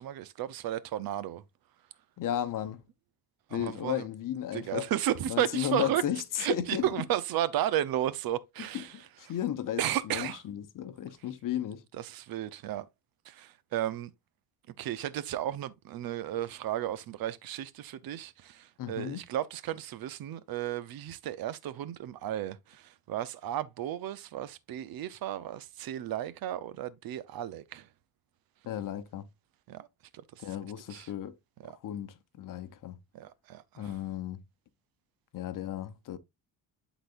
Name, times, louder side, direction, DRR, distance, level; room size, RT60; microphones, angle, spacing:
voice 1, 0.0-1.4 3.5-4.1 4.5-6.0 6.4-9.0 9.8-10.4 11.9-12.9 13.2-14.1 14.8-27.9 29.7-29.9 30.1-30.5 30.9-31.1 31.6-31.8 33.1-33.9, right 12 dB, 70° right, 0.8 m, -34 dB
voice 2, 2.2-2.8 3.5-4.9 5.3-6.8 8.7-11.8 18.8-19.2 28.7-29.3 30.4-31.4 31.8-33.0 33.8-34.4 35.3-36.2, left 11 dB, 55° left, 0.9 m, -34 dB
11.5 x 4.1 x 2.5 m
cardioid pair, 130°, 38 cm